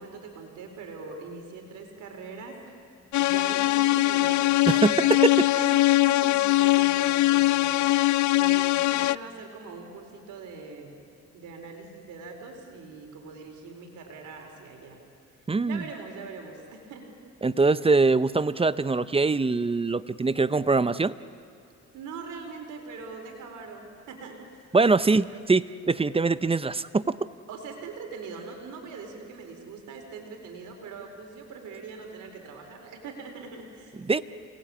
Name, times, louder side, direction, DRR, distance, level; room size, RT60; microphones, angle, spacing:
voice 1, 0.0-2.7 3.2-10.9 11.3-15.0 15.6-17.1 21.9-25.4 27.5-34.2, right 4 dB, 80° right, 3 dB, 4.3 m, -42 dB
sound 1, 3.1-9.2, left 17 dB, 70° left, 0.5 m, -22 dB
voice 2, 4.7-5.2 15.5-15.8 17.4-21.1 24.7-27.2 34.1-34.2, right 3 dB, 20° right, 15 dB, 0.7 m, -23 dB
28.5 x 19.5 x 8.5 m, 2.7 s
cardioid pair, 90°, 30 cm